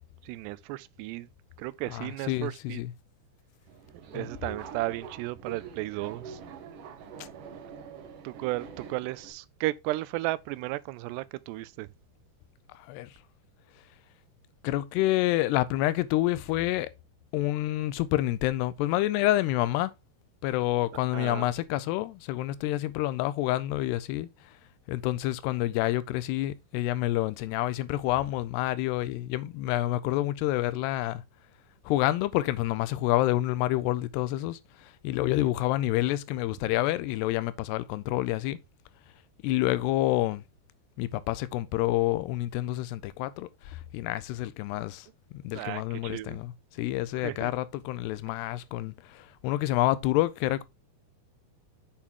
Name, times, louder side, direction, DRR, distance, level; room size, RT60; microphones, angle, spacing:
voice 1, 0.2-1.3 1.6-2.8 4.1-6.4 8.2-11.9 21.1-21.5 45.5-46.4 47.2-47.5, right 18 dB, 90° right, 2.7 m, -34 dB
voice 2, 1.9-2.9 4.1-4.3 12.7-13.1 14.6-16.9 17.3-19.9 20.4-24.3 24.9-31.2 31.9-38.6 39.4-40.4 41.0-50.6, left 16 dB, 85° left, 2.7 m, -28 dB
Subway metro underground, 3.7-9.3, right 6 dB, 65° right, 2.3 m, -44 dB
7.2 x 6.7 x 3.7 m
omnidirectional pair, 4.8 m